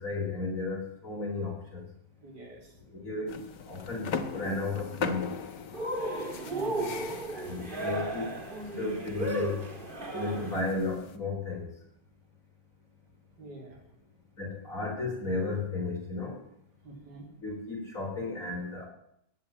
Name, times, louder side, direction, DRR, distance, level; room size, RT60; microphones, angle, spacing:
voice 1, 0.0-1.8 2.9-3.4 3.7-5.3 7.3-8.3 8.8-9.6 10.1-11.7 14.4-16.4 17.4-18.9, left 3 dB, 50° left, 1 dB, 5.0 m, -33 dB
voice 2, 2.2-2.7 6.5-7.2 13.4-13.8 16.8-17.3, right 2 dB, 75° right, 1 dB, 4.2 m, -46 dB
sound 1, 3.3-11.2, left 6 dB, 80° left, 1.9 m, -40 dB
Cheering, 5.7-10.7, right 1 dB, 30° right, 2.2 m, -35 dB
15.0 x 9.5 x 9.2 m, 0.74 s
omnidirectional pair, 1.8 m